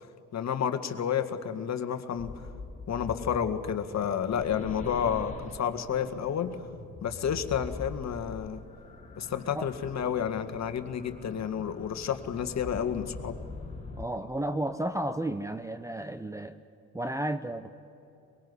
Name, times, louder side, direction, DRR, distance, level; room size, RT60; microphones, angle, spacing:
voice 1, 0.3-2.3 2.9-6.6 7.0-8.6 9.2-13.3, left 8 dB, 40° left, 8 dB, 2.0 m, -30 dB
sound 1, 2.2-14.1, left 3 dB, 20° left, 3.4 m, -44 dB
voice 2, 13.9-16.6 16.9-17.7, right 1 dB, 5° right, 11 dB, 0.9 m, -32 dB
23.5 x 21.5 x 9.8 m, 2.8 s
hypercardioid pair, 65°, 41 cm